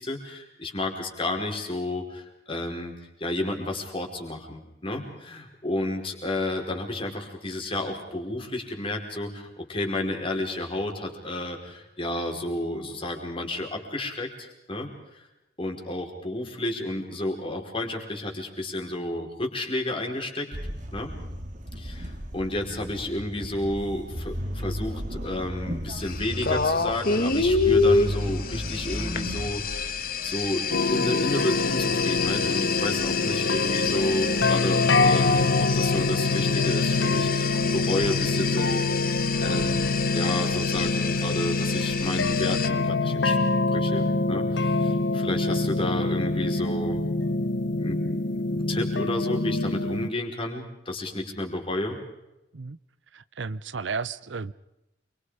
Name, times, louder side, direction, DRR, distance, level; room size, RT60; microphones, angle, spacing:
voice 1, 0.0-15.3 15.6-20.5 20.9-21.1 21.8-43.4 43.7-47.0 47.8-52.0, left 1 dB, 30° left, 2 dB, 4.7 m, -31 dB
sound 1, 20.5-29.5, equal, 40° right, 2.7 m, -34 dB
sound 2, 26.0-42.7, left 5 dB, 50° left, 1.6 m, -28 dB
sound 3, 30.7-50.1, left 2 dB, 65° left, 1.2 m, -25 dB
voice 2, 53.1-54.5, right 4 dB, 70° right, 16 dB, 0.8 m, -33 dB
29.0 x 24.0 x 5.0 m, 0.91 s
head